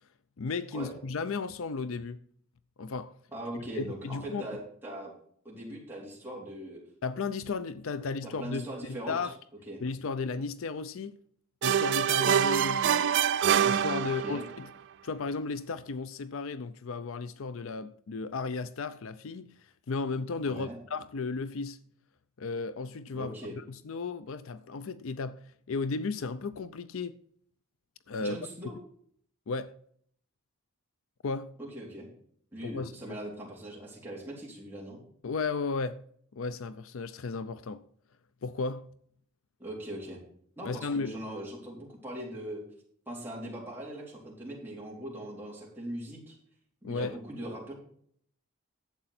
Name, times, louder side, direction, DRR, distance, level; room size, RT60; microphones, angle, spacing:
voice 1, 0.4-2.2 2.8-3.2 3.7-4.5 7.0-9.4 9.8-11.1 11.6-13.1 13.6-14.7 15.0-21.8 22.4-27.2 28.1-28.4 29.5-29.7 31.2-31.5 32.6-33.2 35.2-36.0 36.3-37.8 38.4-38.9 40.6-41.2 46.8-47.2, left 4 dB, 65° left, 0.5 m, -34 dB
voice 2, 3.3-5.1 5.4-6.8 8.2-9.2 9.7-9.8 14.0-14.5 20.4-20.8 23.1-23.5 28.2-28.7 31.7-32.1 32.5-35.0 39.6-40.2 40.6-42.6 43.1-46.3 46.8-47.7, right 1 dB, 10° right, 3.7 m, -40 dB
sound 1, 11.6-14.6, right 9 dB, 55° right, 0.3 m, -25 dB
11.5 x 7.8 x 4.3 m
head